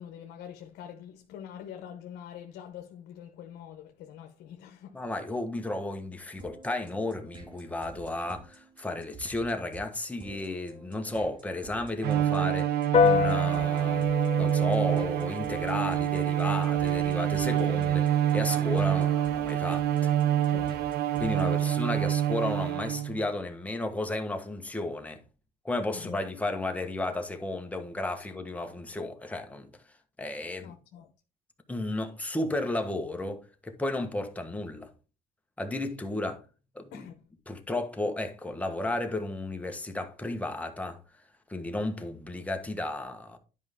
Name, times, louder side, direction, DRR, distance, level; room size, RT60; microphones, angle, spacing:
voice 1, 0.0-5.1 17.5-17.8 20.5-20.8 21.4-21.8 25.9-26.2 30.6-31.1 36.9-37.1, left 9 dB, 80° left, 1.0 m, -45 dB
voice 2, 4.9-14.1 14.4-18.0 18.3-20.1 21.2-25.2 25.6-30.7 31.7-34.9 35.6-36.4 36.7-37.1 37.5-41.2 41.5-43.4, left 2 dB, 10° left, 1.3 m, -33 dB
sound 1, 6.4-21.6, right 3 dB, 25° right, 2.1 m, -50 dB
Bowed string instrument, 12.0-23.2, right 11 dB, 70° right, 0.6 m, -27 dB
Piano, 12.9-22.7, left 6 dB, 35° left, 1.0 m, -32 dB
10.5 x 5.1 x 3.6 m
cardioid pair, 110°, 17 cm